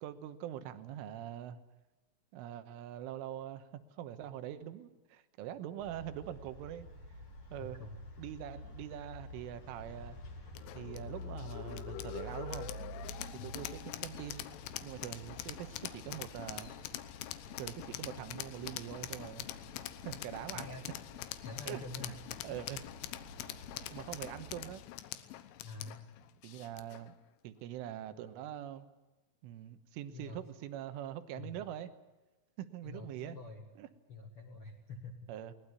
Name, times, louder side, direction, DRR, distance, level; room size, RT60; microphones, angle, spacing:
voice 1, 0.0-1.6 2.3-6.9 7.5-7.8 8.2-10.2 10.8-12.7 13.4-14.5 14.8-16.7 17.6-19.5 20.1-20.8 21.7-22.1 22.4-22.9 23.4-24.8 26.4-27.1 27.4-28.9 29.4-31.9 32.6-33.4 33.8-33.9 35.3-35.5, right 11 dB, 90° right, 11 dB, 3.7 m, -43 dB
sound 1, 5.8-24.7, left 1 dB, 35° left, 2.8 m, -50 dB
voice 2, 7.6-8.1 13.4-13.6 20.5-20.8 21.4-22.2 22.5-22.6 25.6-26.1 30.1-30.4 31.3-31.6 32.8-33.7 34.1-35.3, left 2 dB, 55° left, 2 dB, 1.5 m, -46 dB
sound 2, 10.6-27.1, left 13 dB, 85° left, 3.6 m, -44 dB
21.5 x 19.5 x 9.7 m, 1.1 s
omnidirectional pair, 5.6 m